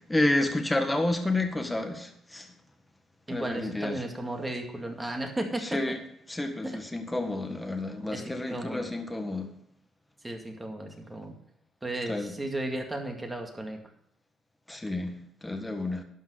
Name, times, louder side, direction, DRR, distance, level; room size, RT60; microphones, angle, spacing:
voice 1, 0.1-2.5 3.3-4.0 5.6-6.0 6.3-9.5 12.1-12.4 14.7-16.0, left 2 dB, 10° left, 5 dB, 1.6 m, -30 dB
voice 2, 3.3-5.8 6.6-6.7 8.3-8.9 10.2-11.4 11.8-13.8, right 1 dB, 15° right, 3 dB, 2.1 m, -34 dB
12.0 x 5.6 x 6.4 m, 0.73 s
cardioid pair, 95°, 0 cm